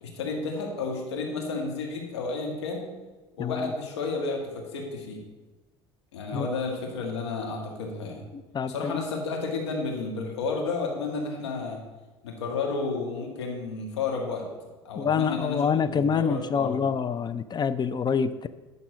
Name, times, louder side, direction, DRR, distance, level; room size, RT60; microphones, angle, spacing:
voice 1, 0.0-2.9 3.4-5.2 6.1-8.3 8.7-11.8 12.2-14.5 14.9-16.9, left 4 dB, 85° left, 1 dB, 1.8 m, -32 dB
voice 2, 3.4-3.7 6.3-6.5 8.5-9.0 15.0-18.5, left 6 dB, 30° left, 13 dB, 0.5 m, -26 dB
11.5 x 4.1 x 6.3 m, 1.2 s
hypercardioid pair, 75°, 14 cm